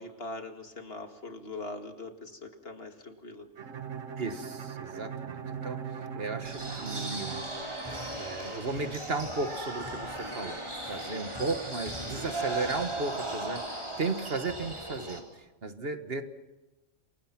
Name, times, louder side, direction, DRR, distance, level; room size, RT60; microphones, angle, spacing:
voice 1, 0.0-3.5 11.1-11.5, left 2 dB, 50° left, 5 dB, 2.3 m, -42 dB
Bowed string instrument, 3.6-8.4, right 7 dB, 90° right, 1.6 m, -40 dB
voice 2, 4.2-7.4 7.9-16.2, right 3 dB, 50° right, 8 dB, 1.6 m, -35 dB
sound 1, 6.4-15.2, right 1 dB, 25° right, 4.1 m, -37 dB
28.0 x 22.5 x 5.9 m, 1.1 s
omnidirectional pair, 1.3 m